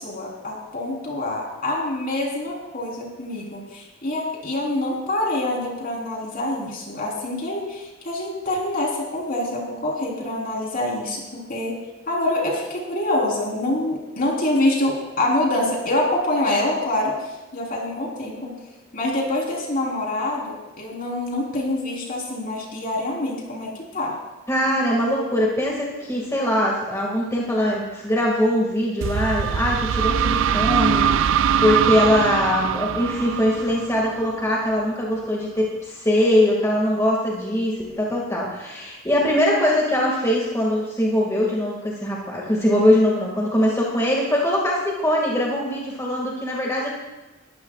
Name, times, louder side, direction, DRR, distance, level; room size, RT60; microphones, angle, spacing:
voice 1, 0.0-18.6 18.9-24.2, left 1 dB, 45° left, -2 dB, 4.0 m, -26 dB
voice 2, 24.5-46.9, left 1 dB, 15° left, -3 dB, 2.1 m, -22 dB
sound 1, 29.0-34.6, right 8 dB, 70° right, 0.4 m, -22 dB
20.5 x 14.0 x 2.4 m, 1.1 s
head